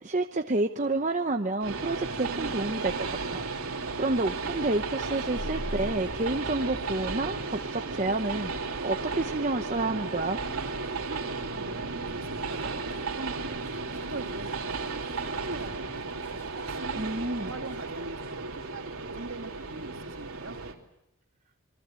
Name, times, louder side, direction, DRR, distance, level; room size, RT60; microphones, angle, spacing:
voice 1, 0.0-3.7 4.0-10.4 17.0-17.5, right 2 dB, 35° right, 5 dB, 0.9 m, -29 dB
Train, 1.6-20.7, right 4 dB, 75° right, 3.0 m, -34 dB
sound 1, 5.3-6.3 7.7-8.0 8.7-8.8 10.2-10.3 10.5-10.7 12.1-12.6 13.4-16.6 17.5-17.8, equal, 10° left, 5.3 m, -57 dB
sound 2, 5.4-7.8, equal, 55° left, 2.0 m, -40 dB
voice 2, 10.9-16.1 16.6-20.6, right 2 dB, 60° right, 5 dB, 1.9 m, -43 dB
27.0 x 22.0 x 7.7 m, 0.82 s
head